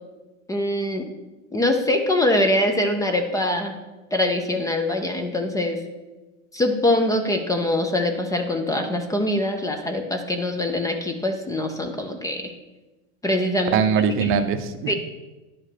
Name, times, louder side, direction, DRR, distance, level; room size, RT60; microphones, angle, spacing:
voice 1, 0.5-1.1 1.5-3.8 4.1-5.8 6.5-12.5 13.2-13.8 14.2-14.3 14.9-15.0, left 1 dB, 10° left, 5 dB, 0.4 m, -23 dB
voice 2, 13.7-14.9, right 6 dB, 35° right, 9 dB, 0.6 m, -21 dB
11.0 x 4.9 x 4.4 m, 1.1 s
supercardioid pair, 140°, 40 cm